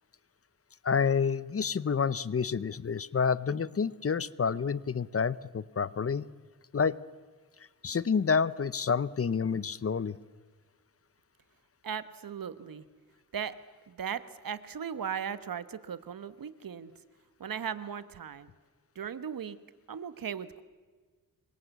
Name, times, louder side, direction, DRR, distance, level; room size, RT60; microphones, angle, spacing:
voice 1, 0.8-6.3 6.7-7.0 7.8-10.2, left 6 dB, 40° left, 18 dB, 0.7 m, -28 dB
voice 2, 11.8-12.8 13.3-13.6 13.9-16.9 17.4-18.5 18.9-19.6 19.9-20.6, right 7 dB, 75° right, 13 dB, 1.3 m, -37 dB
26.5 x 23.5 x 8.2 m, 1.5 s
wide cardioid pair, 105°, 35 cm